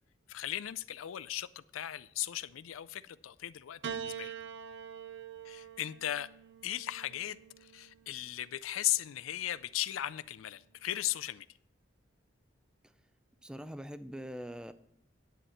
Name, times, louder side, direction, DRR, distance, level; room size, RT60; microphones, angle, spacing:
voice 1, 0.3-4.3 5.4-6.3 6.6-11.5, left 13 dB, 90° left, 0.4 m, -37 dB
Piano, 3.8-8.3 9.3-10.1, right 8 dB, 60° right, 0.5 m, -45 dB
voice 2, 13.4-14.7, equal, 5° right, 0.4 m, -43 dB
10.0 x 8.3 x 4.4 m
head